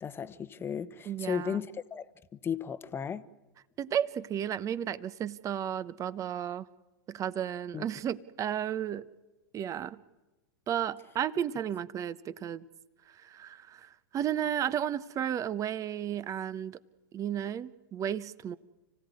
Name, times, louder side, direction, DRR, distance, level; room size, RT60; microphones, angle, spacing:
voice 1, 0.0-2.1 2.3-3.2 7.7-7.8, left 7 dB, 20° left, 1.2 m, -35 dB
voice 2, 1.1-1.6 3.8-6.7 7.1-9.1 9.5-10.0 10.7-12.7 13.1-16.8 17.1-18.6, right 9 dB, 30° right, 1.0 m, -33 dB
29.5 x 16.5 x 9.7 m
hypercardioid pair, 105°, 12 cm